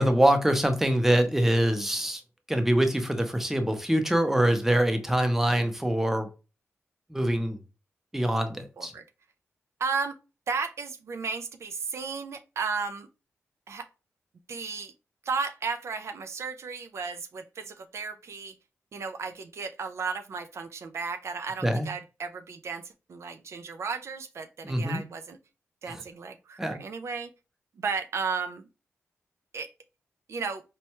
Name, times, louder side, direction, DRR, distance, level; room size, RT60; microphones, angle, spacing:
voice 1, 0.0-2.2 2.5-6.3 7.1-7.6 8.1-8.9 21.6-21.9 24.6-25.0 25.9-26.0 26.6-26.8, right 1 dB, 5° right, 0.6 m, -24 dB
voice 2, 9.8-10.2 10.5-13.1 13.7-13.9 14.5-14.9 15.3-18.6 18.9-22.8 23.1-25.4 25.8-27.3 27.8-28.6 29.5-29.7 30.3-30.6, right 5 dB, 65° right, 0.3 m, -34 dB
4.2 x 2.2 x 2.9 m
cardioid pair, 80°, 5 cm